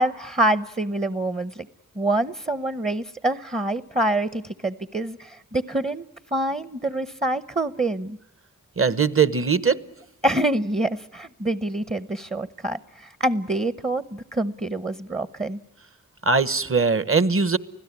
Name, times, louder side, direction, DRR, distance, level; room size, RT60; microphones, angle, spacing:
voice 1, 0.0-1.7 2.0-6.0 6.3-8.2 10.2-15.6, right 1 dB, 20° right, 15 dB, 0.8 m, -26 dB
voice 2, 8.8-9.8 16.2-17.6, right 5 dB, 40° right, 16 dB, 1.1 m, -20 dB
25.0 x 16.5 x 9.7 m, 0.89 s
cardioid pair, 50°, 33 cm